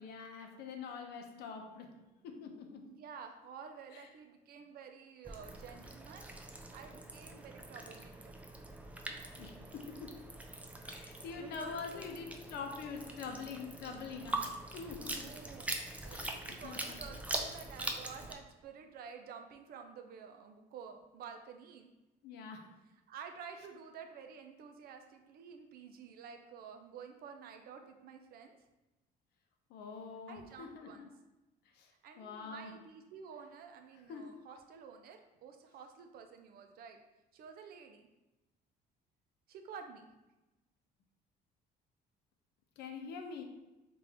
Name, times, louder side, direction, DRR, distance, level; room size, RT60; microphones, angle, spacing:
voice 1, 0.0-2.0 2.2-2.9 3.9-4.1 9.4-10.3 10.8-14.5 14.7-15.3 16.1-17.0 22.2-22.7 29.7-31.1 31.7-32.7 34.1-34.4 42.8-43.4, left 5 dB, 75° left, 4 dB, 0.6 m, -45 dB
voice 2, 2.9-6.3 6.7-8.3 11.4-12.0 15.0-15.7 16.0-21.9 23.1-28.6 30.3-31.1 32.0-37.0 37.3-38.1 39.5-40.1, right 6 dB, 65° right, 5 dB, 0.5 m, -51 dB
sound 1, 5.2-18.3, right 1 dB, 10° right, 0.4 m, -43 dB
3.5 x 2.5 x 3.4 m, 1.0 s
cardioid pair, 110°, 17 cm